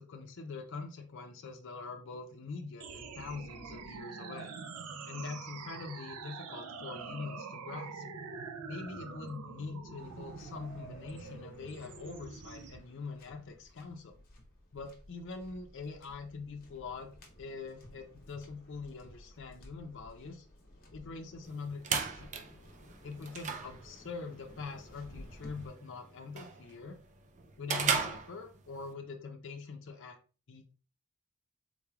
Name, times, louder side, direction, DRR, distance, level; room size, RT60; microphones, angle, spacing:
voice 1, 0.0-4.5 5.0-8.0 8.7-14.1 14.7-17.1 17.4-20.5 20.9-22.3 23.0-27.0 27.6-30.2 30.5-30.7, left 4 dB, 55° left, 4 dB, 0.5 m, -44 dB
sound 1, 2.8-12.8, right 5 dB, 90° right, 0.5 m, -45 dB
Waves surf, 10.0-25.7, left 1 dB, 40° left, 0.9 m, -55 dB
sound 2, 21.4-28.9, right 6 dB, 35° right, 0.4 m, -38 dB
3.7 x 3.1 x 2.3 m, 0.36 s
head